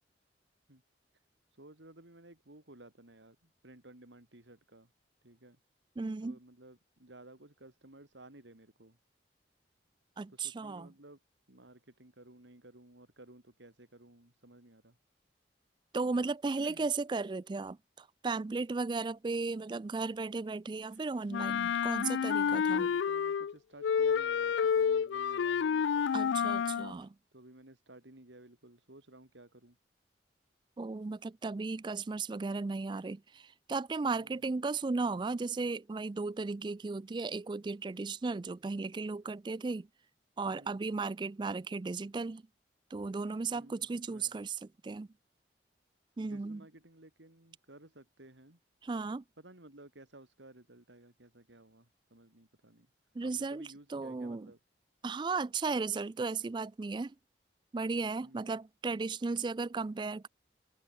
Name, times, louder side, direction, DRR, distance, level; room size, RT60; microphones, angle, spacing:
voice 1, 1.5-4.9 5.2-5.6 6.2-9.0 10.3-11.2 11.5-15.0 16.6-16.9 22.5-26.1 27.3-29.8 34.1-34.5 40.5-40.8 43.5-44.3 46.2-48.6 49.4-52.9 53.2-54.6 58.2-58.6, right 1 dB, 80° right, 3.2 m, -55 dB
voice 2, 6.0-6.4 10.2-10.9 15.9-22.9 26.1-27.1 30.8-39.9 40.4-42.4 42.9-45.1 46.2-46.6 48.8-49.2 53.2-54.5 55.0-57.1 57.7-60.3, right 4 dB, 25° right, 0.3 m, -35 dB
Wind instrument woodwind instrument, 21.3-23.5 23.8-26.9, left 7 dB, 85° left, 0.3 m, -29 dB
head